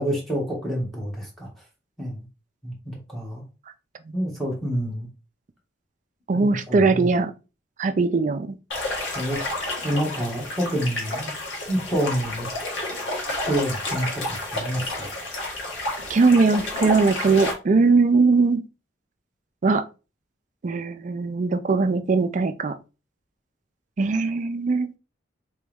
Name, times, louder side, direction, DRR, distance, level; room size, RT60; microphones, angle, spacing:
voice 1, 0.0-1.5 2.0-2.3 2.6-3.4 4.1-5.1 6.3-7.1 9.1-9.4 9.8-11.4 11.7-12.5 13.4-15.1, equal, ahead, 1.4 m, -28 dB
voice 2, 6.3-7.3 7.8-8.6 16.1-18.6 19.6-19.8 20.6-22.8 24.0-24.9, right 4 dB, 40° right, 0.4 m, -20 dB
sound 1, 8.7-17.5, left 1 dB, 85° left, 1.5 m, -30 dB
3.4 x 3.0 x 3.4 m
head